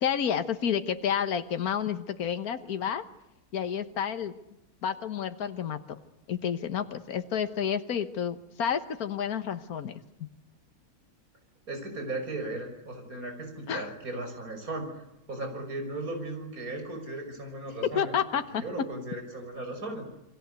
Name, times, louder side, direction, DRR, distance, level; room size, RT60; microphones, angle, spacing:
voice 1, 0.0-3.0 3.5-4.3 4.8-6.0 6.3-10.0 13.7-13.9 17.9-18.6, left 8 dB, 80° left, 9 dB, 1.7 m, -30 dB
voice 2, 11.7-14.9 15.3-18.2 18.5-20.0, right 2 dB, 70° right, 5 dB, 6.5 m, -36 dB
29.0 x 23.0 x 8.2 m, 0.87 s
omnidirectional pair, 1.5 m